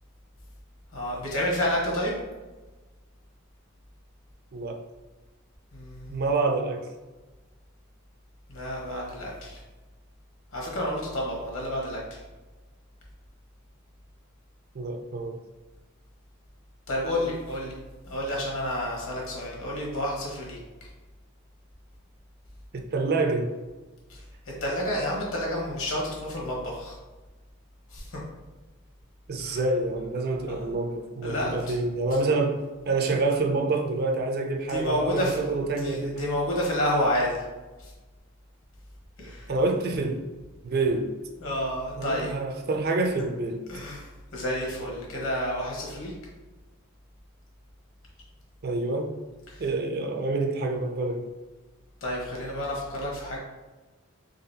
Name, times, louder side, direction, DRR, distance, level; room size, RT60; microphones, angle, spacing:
voice 1, 0.9-2.2 5.7-6.2 8.5-9.6 10.5-12.2 16.9-17.8 18.1-20.9 24.1-24.2 24.6-26.9 27.9-28.2 29.4-29.6 30.3-30.7 31.2-31.7 34.7-37.4 37.8-37.9 39.2-39.5 41.4-42.3 43.7-44.1 44.3-46.1 49.5-49.6 52.0-53.4, left 1 dB, 70° left, -3 dB, 1.2 m, -30 dB
voice 2, 4.5-4.8 6.1-6.9 14.7-15.4 22.7-23.5 29.3-32.6 32.9-36.3 39.5-40.2 40.6-41.1 42.0-43.6 48.6-49.1 49.6-51.3, right 3 dB, 45° right, 4 dB, 0.4 m, -27 dB
3.9 x 3.5 x 2.7 m, 1.2 s
head